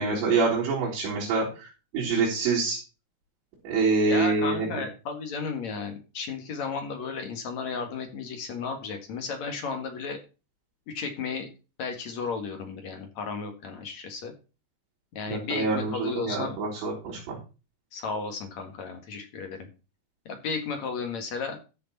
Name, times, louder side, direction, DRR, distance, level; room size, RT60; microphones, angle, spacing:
voice 1, 0.0-1.7 1.9-2.8 3.6-4.8 15.3-17.4, right 4 dB, 80° right, -6 dB, 6.0 m, -26 dB
voice 2, 4.1-10.2 10.9-11.5 11.8-14.3 15.2-16.6 17.9-19.7 20.3-21.6, left 5 dB, 50° left, 5 dB, 2.4 m, -34 dB
14.0 x 6.7 x 4.2 m, 0.32 s
omnidirectional pair, 5.1 m